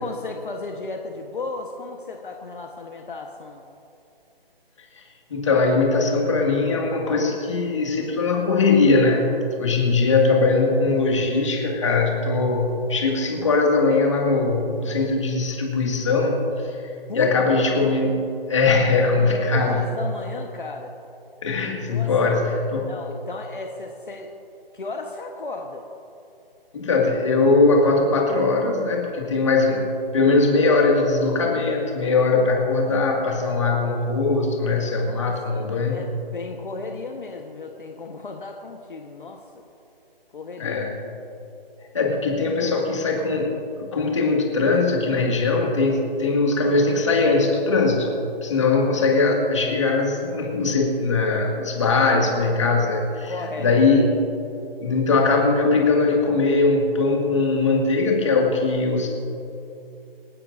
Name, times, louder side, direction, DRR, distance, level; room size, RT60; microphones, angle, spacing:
voice 1, 0.0-3.6 17.1-17.3 19.2-20.9 21.9-22.1 22.9-24.3 24.7-25.8 35.0-39.6 40.3-40.8 53.3-53.7, left 3 dB, 60° left, 2 dB, 1.2 m, -35 dB
voice 2, 5.3-16.8 17.1-19.8 21.4-22.9 26.7-29.9 30.1-36.0 40.6-40.9 41.9-48.1 48.4-54.1 54.8-59.1, left 3 dB, 30° left, -1 dB, 2.1 m, -20 dB
27.5 x 11.0 x 2.6 m, 2.8 s
hypercardioid pair, 175°, 30 cm